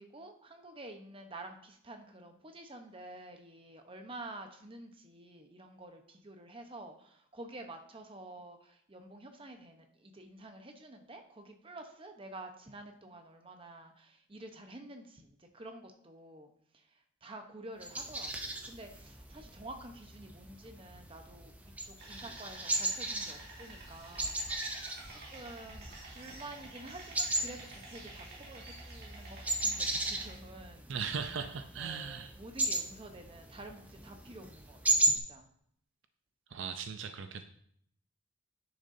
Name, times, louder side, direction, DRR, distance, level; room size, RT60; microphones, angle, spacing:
voice 1, 0.0-21.5 21.8-30.8 31.8-35.5, right 2 dB, 25° right, 5 dB, 0.9 m, -49 dB
sound 1, 17.8-35.2, right 2 dB, 5° right, 0.5 m, -36 dB
sound 2, 22.0-30.4, right 2 dB, 50° right, 2.6 m, -50 dB
voice 2, 30.9-32.3 36.5-37.5, right 6 dB, 65° right, 8 dB, 0.5 m, -38 dB
10.5 x 6.5 x 2.7 m, 0.66 s
head